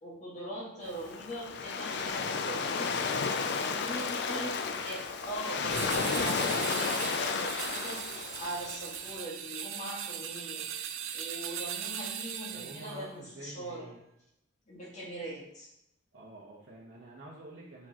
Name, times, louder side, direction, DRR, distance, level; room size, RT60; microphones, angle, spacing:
voice 1, 0.0-3.0 3.6-8.0 8.4-10.7 11.1-13.9 14.7-15.7, right 1 dB, 35° left, -4 dB, 1.7 m, -41 dB
Waves surf, 0.9-9.1, left 5 dB, 55° left, 0.4 m, -33 dB
voice 2, 3.8-4.8 12.5-14.0 16.1-17.9, right 2 dB, 60° right, -6 dB, 0.9 m, -49 dB
sound 1, 5.7-13.0, right 9 dB, 80° right, 0.5 m, -39 dB
7.5 x 4.5 x 2.9 m, 0.80 s
head